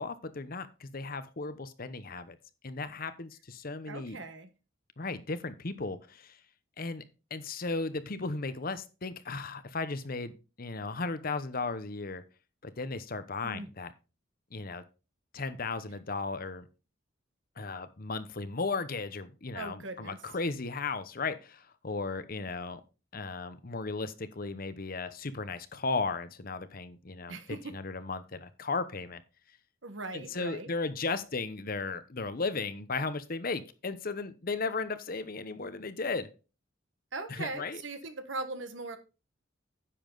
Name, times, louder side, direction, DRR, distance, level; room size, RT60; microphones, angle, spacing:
voice 1, 0.0-2.4 2.6-4.2 5.0-6.4 6.8-7.0 7.3-12.2 12.6-13.9 14.5-14.8 15.3-16.7 17.6-22.8 23.1-27.4 27.7-29.2 30.1-36.3 37.3-37.8, left 3 dB, 50° left, 12 dB, 0.9 m, -35 dB
voice 2, 3.9-4.5 13.4-13.7 19.5-20.2 27.3-27.7 29.8-30.7 37.1-39.0, right 3 dB, 70° right, 9 dB, 1.4 m, -39 dB
10.0 x 7.1 x 3.9 m, 0.31 s
head